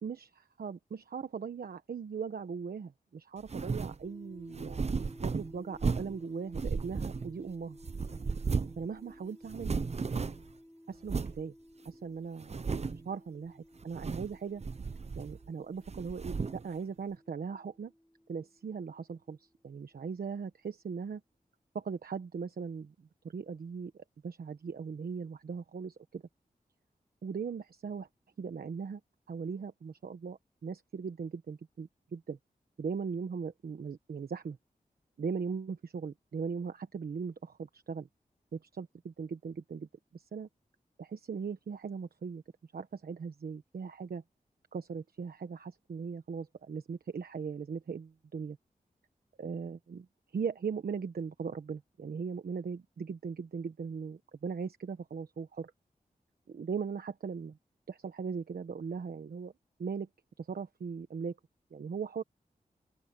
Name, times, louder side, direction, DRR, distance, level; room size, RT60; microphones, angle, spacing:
voice 1, 0.0-7.8 8.8-9.7 10.9-11.5 11.8-12.6 13.0-14.6 15.2-17.9 18.3-21.2 21.7-26.2 27.2-28.1 28.4-29.0 29.3-32.4 32.8-34.6 35.2-38.1 38.5-40.5 41.0-42.4 42.7-44.2 44.7-48.6 49.4-50.1 50.3-55.7 56.5-57.6 57.9-59.5 59.8-60.1 60.4-61.4 61.7-62.2, right 5 dB, 85° right, 1.2 m, -39 dB
sound 1, 3.5-4.0 4.5-6.2 6.5-7.5 7.8-8.9 9.1-9.2 9.5-10.5 11.1-11.4 11.9-12.0 12.4-13.1 13.8-14.4 14.6-15.5 15.9-16.7, right 4 dB, 45° right, 0.7 m, -34 dB
sound 2, 4.0-19.5, equal, 5° left, 5.6 m, -56 dB
open air
wide cardioid pair, 85°, 15 cm